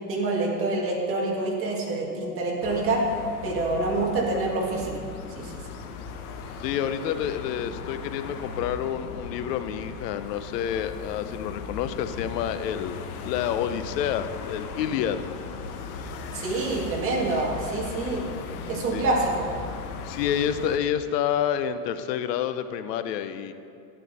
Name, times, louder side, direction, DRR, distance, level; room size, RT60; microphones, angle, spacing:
voice 1, 0.1-3.0 3.4-4.9 5.4-5.6 16.3-18.3 18.7-19.5, right 2 dB, 25° right, -2 dB, 1.9 m, -26 dB
sound 1, 2.6-20.8, left 5 dB, 65° left, 1.1 m, -38 dB
voice 2, 6.6-13.0 13.2-15.2 18.9-19.0 20.0-23.5, left 9 dB, 85° left, 11 dB, 0.8 m, -28 dB
12.0 x 10.0 x 4.2 m, 2.4 s
supercardioid pair, 165°, 47 cm